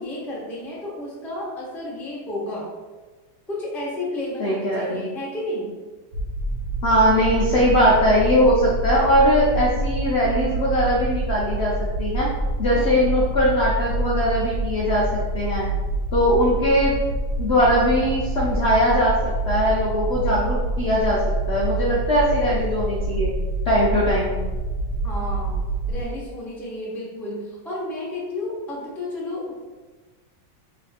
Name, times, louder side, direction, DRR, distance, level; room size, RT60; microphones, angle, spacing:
voice 1, 0.0-2.7 3.5-5.7 12.7-13.0 25.0-25.6 25.9-29.6, left 1 dB, ahead, -5 dB, 0.5 m, -32 dB
voice 2, 4.4-5.1 6.8-12.3 12.6-15.1 15.3-15.7 16.1-17.0 17.4-21.2 21.5-23.3 23.6-24.4, equal, 70° left, -5 dB, 0.6 m, -20 dB
sound 1, 6.1-26.0, right 2 dB, 85° right, 1.6 m, -26 dB
3.4 x 3.2 x 4.2 m, 1.3 s
omnidirectional pair, 2.1 m